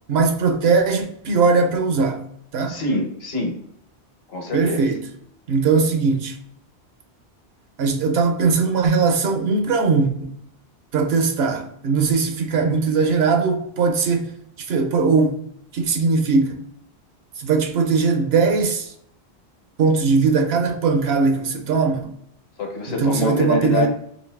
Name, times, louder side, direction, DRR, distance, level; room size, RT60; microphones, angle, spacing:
voice 1, 0.1-2.2 2.5-2.8 4.5-5.0 5.5-6.3 7.8-10.4 10.9-14.3 14.7-15.4 15.7-16.6 17.4-18.9 19.8-22.1 23.0-23.9, right 4 dB, 70° right, 0.8 m, -20 dB
voice 2, 2.7-3.5 4.3-4.9 22.6-23.9, left 2 dB, 65° left, 1.2 m, -24 dB
4.0 x 2.6 x 3.3 m
omnidirectional pair, 1.1 m